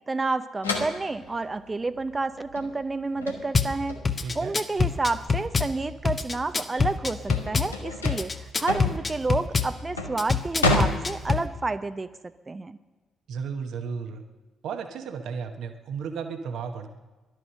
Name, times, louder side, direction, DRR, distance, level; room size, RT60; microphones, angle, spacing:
voice 1, 0.1-4.0 4.3-12.1 12.5-12.8, right 3 dB, 25° right, 11 dB, 0.7 m, -30 dB
sound 1, 0.6-5.7 6.1-11.7, left 2 dB, 85° left, 1.0 m, -31 dB
Drum kit / Bass drum, 3.5-3.7 4.0-5.7 6.0-7.7 8.0-9.7 10.2-11.5, left 5 dB, 30° left, 1.0 m, -25 dB
voice 2, 4.2-4.5 13.3-14.2 14.6-16.9, right 6 dB, 60° right, 6 dB, 1.1 m, -34 dB
16.5 x 12.0 x 6.5 m, 1.2 s
figure-of-eight pair, 40°, 0 cm